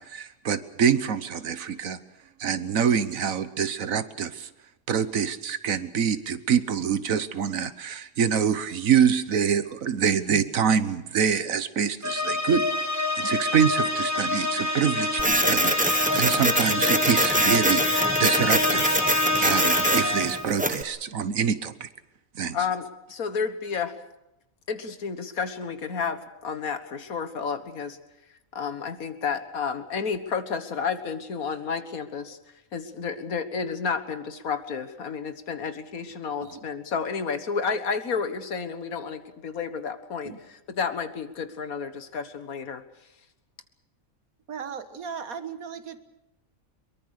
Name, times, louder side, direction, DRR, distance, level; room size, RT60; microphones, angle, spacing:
voice 1, 0.0-2.0 2.4-4.5 4.9-12.7 13.2-19.0 19.4-21.9 22.4-22.6, right 7 dB, 70° right, 13 dB, 1.5 m, -25 dB
sound 1, 12.0-20.5, left 2 dB, 15° left, 1.3 m, -26 dB
Printer, 15.2-20.8, right 1 dB, 5° right, 0.9 m, -25 dB
voice 2, 22.5-24.0 24.7-28.0 28.5-32.4 32.7-42.8, left 5 dB, 85° left, 10 dB, 1.9 m, -31 dB
voice 3, 44.5-46.0, right 6 dB, 85° right, 10 dB, 1.9 m, -37 dB
23.0 x 23.0 x 6.6 m, 0.91 s
omnidirectional pair, 1.5 m